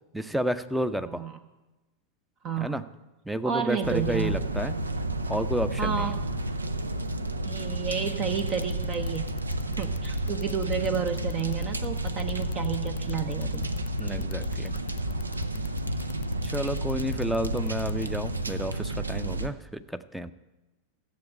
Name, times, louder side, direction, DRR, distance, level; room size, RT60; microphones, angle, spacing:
voice 1, 0.1-1.2 2.6-2.8 3.3-4.8 5.3-6.1 14.0-14.7 16.4-20.3, right 1 dB, ahead, 12 dB, 0.6 m, -31 dB
voice 2, 1.1-1.4 2.4-2.8 3.4-4.3 5.8-6.2 7.5-9.4 9.8-13.9, right 7 dB, 35° right, 9 dB, 0.8 m, -31 dB
sound 1, 3.8-19.5, right 1 dB, 80° right, 0.7 m, -31 dB
sound 2, 8.4-18.1, left 13 dB, 55° left, 0.4 m, -40 dB
13.5 x 7.9 x 8.6 m, 1.1 s
figure-of-eight pair, 90°, 0 cm